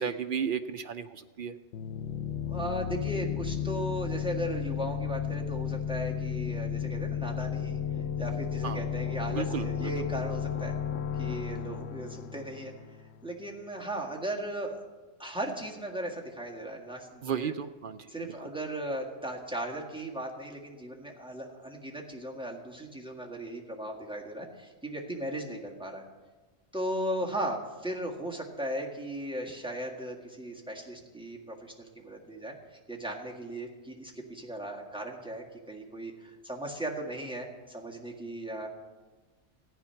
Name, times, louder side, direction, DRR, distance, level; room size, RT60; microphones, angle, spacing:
voice 1, 0.0-1.5 8.6-8.9 9.3-9.9 17.2-18.0 18.3-18.4, right 7 dB, 60° right, 10 dB, 0.6 m, -33 dB
sound 1, 1.7-13.3, left 8 dB, 85° left, 1.0 m, -33 dB
voice 2, 2.4-7.8 8.2-10.7 11.2-12.7 13.2-14.8 15.2-17.5 18.1-26.0 26.7-32.5 32.9-38.7, right 1 dB, 5° right, -1 dB, 1.7 m, -37 dB
15.0 x 9.6 x 5.7 m, 1.3 s
omnidirectional pair, 1.2 m